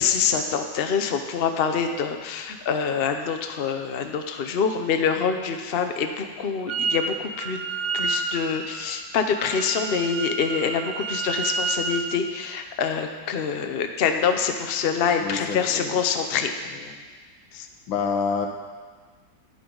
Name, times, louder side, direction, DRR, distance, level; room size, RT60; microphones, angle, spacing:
voice 1, 0.0-7.6 7.9-16.5 17.5-17.7, left 6 dB, 70° left, 5 dB, 0.5 m, -25 dB
Wind instrument woodwind instrument, 6.7-7.1 7.3-12.2, right 4 dB, 65° right, 0.9 m, -30 dB
voice 2, 15.2-16.0 16.8-17.0 17.9-18.5, left 5 dB, 85° left, 4 dB, 1.8 m, -27 dB
10.5 x 10.0 x 3.9 m, 1.4 s
omnidirectional pair, 2.1 m